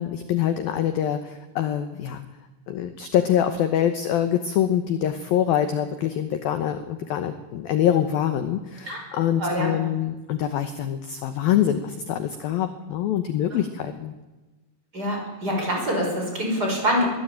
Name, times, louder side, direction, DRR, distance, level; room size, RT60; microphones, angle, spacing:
voice 1, 0.0-2.2 2.7-14.1, left 10 dB, 90° left, 9 dB, 2.0 m, -25 dB
voice 2, 9.4-9.7 13.5-13.6 14.9-17.1, equal, 20° right, 1 dB, 6.1 m, -25 dB
22.0 x 16.0 x 8.9 m, 1.1 s
omnidirectional pair, 5.8 m